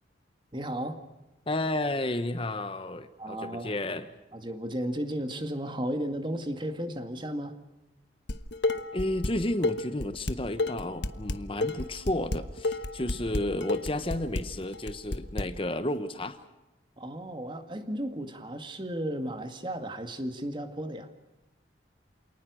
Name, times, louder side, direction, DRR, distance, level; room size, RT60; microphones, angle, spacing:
voice 1, 0.5-1.0 3.2-3.7 4.3-7.6 17.0-21.1, right 1 dB, 25° right, 8 dB, 2.1 m, -34 dB
voice 2, 1.5-4.1 8.9-16.4, left 1 dB, 30° left, 11 dB, 1.0 m, -32 dB
Dishes pots and pans, 8.3-9.3 9.6-15.4, left 2 dB, 70° left, 1.2 m, -30 dB
27.5 x 19.0 x 6.4 m, 1.0 s
head